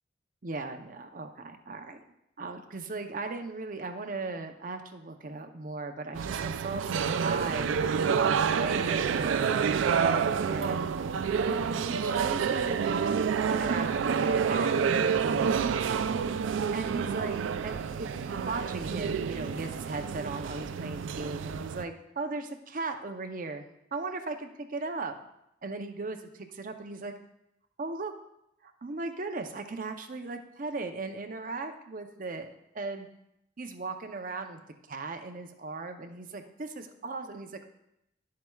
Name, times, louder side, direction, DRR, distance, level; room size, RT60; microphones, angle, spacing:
voice 1, 0.4-2.0 2.4-7.8 8.6-11.0 11.4-13.0 13.5-15.8 16.7-23.7 23.9-25.2 25.6-27.1 27.8-28.1 28.6-32.5 32.7-33.1 33.6-34.6 34.9-37.5, right 3 dB, 45° right, 6 dB, 0.6 m, -37 dB
sound 1, 6.2-21.8, right 6 dB, 85° right, 0.4 m, -28 dB
10.5 x 7.5 x 2.3 m, 0.83 s
head